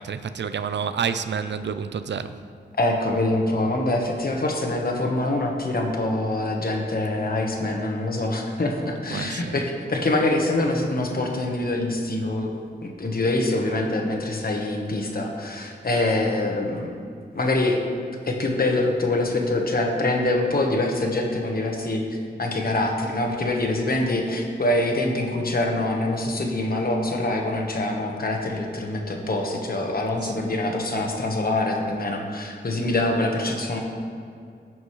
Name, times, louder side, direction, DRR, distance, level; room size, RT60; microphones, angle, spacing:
voice 1, 0.0-2.4 9.1-9.7 30.2-30.4, right 6 dB, 85° right, 11 dB, 0.4 m, -29 dB
voice 2, 2.8-12.5 12.8-16.9 17.3-17.8 18.2-22.0 22.4-33.8, left 2 dB, 55° left, 1 dB, 1.2 m, -24 dB
15.5 x 6.2 x 3.2 m, 2.4 s
wide cardioid pair, 110°, 18 cm